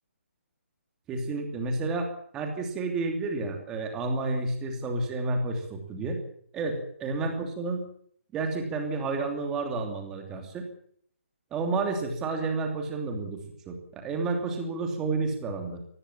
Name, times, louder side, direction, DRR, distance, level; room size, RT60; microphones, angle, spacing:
voice 1, 1.1-6.2 6.5-7.8 8.3-10.6 11.5-13.4 13.7-15.8, right 3 dB, 5° right, 4 dB, 2.9 m, -30 dB
23.0 x 19.5 x 7.3 m, 0.62 s
hypercardioid pair, 180°, 8 cm